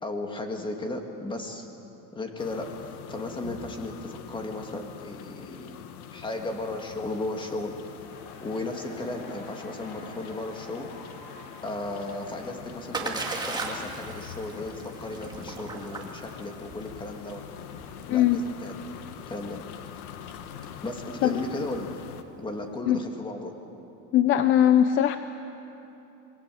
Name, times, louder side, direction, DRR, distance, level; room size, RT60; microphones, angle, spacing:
voice 1, 0.0-1.7 2.1-2.7 3.1-7.7 8.4-10.9 11.6-17.4 18.1-18.8 19.3-19.6 20.8-21.9 22.4-23.5, left 2 dB, 10° left, 4 dB, 2.1 m, -35 dB
sound 1, 2.4-22.2, left 9 dB, 90° left, 1.6 m, -44 dB
sound 2, 7.7-19.3, left 3 dB, 65° left, 5.4 m, -50 dB
Splash splatter, 12.2-22.1, right 3 dB, 10° right, 2.2 m, -38 dB
voice 2, 18.1-18.4 21.2-21.4 22.8-23.0 24.1-25.2, left 10 dB, 30° left, 10 dB, 0.6 m, -20 dB
27.0 x 21.0 x 7.8 m, 2.9 s
supercardioid pair, 155°, 43 cm